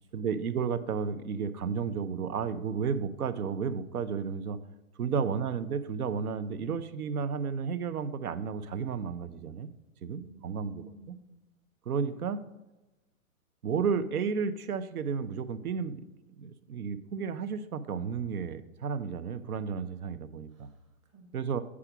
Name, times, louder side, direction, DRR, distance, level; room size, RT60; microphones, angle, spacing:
voice 1, 0.1-4.6 5.0-9.7 10.0-10.8 11.9-12.4 13.6-16.0 16.4-20.7 21.3-21.6, right 6 dB, 90° right, 13 dB, 0.9 m, -32 dB
voice 2, 10.2-11.4 20.5-21.4, right 3 dB, 20° right, 3 dB, 0.8 m, -54 dB
8.5 x 4.9 x 6.0 m, 1.0 s
hypercardioid pair, 170°, 43 cm